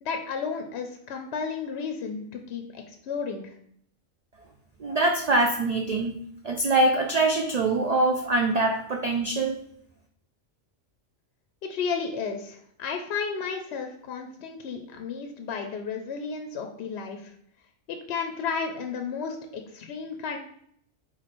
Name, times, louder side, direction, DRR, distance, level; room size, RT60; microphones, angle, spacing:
voice 1, 0.0-3.5 11.6-17.3 17.9-20.4, left 5 dB, 65° left, 4 dB, 0.7 m, -33 dB
voice 2, 4.8-6.1 6.4-9.6, right 2 dB, 75° right, 2 dB, 0.3 m, -23 dB
4.1 x 3.1 x 4.1 m, 0.67 s
omnidirectional pair, 1.3 m